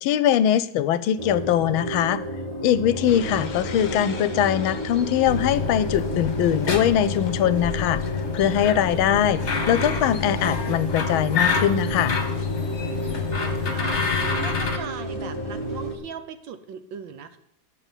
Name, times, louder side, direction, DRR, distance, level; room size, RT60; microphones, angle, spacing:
voice 1, 0.0-2.2 2.6-8.0 8.3-12.1, left 10 dB, 80° left, 16 dB, 1.4 m, -22 dB
sound 1, 1.2-16.0, right 1 dB, 15° right, 2.4 m, -32 dB
sound 2, 3.1-15.9, left 4 dB, 55° left, 0.5 m, -41 dB
sound 3, 5.2-14.8, left 5 dB, 35° left, 1.5 m, -27 dB
voice 2, 13.1-14.0 14.4-17.4, right 7 dB, 70° right, 10 dB, 1.4 m, -39 dB
9.9 x 6.9 x 8.9 m, 0.79 s
omnidirectional pair, 2.3 m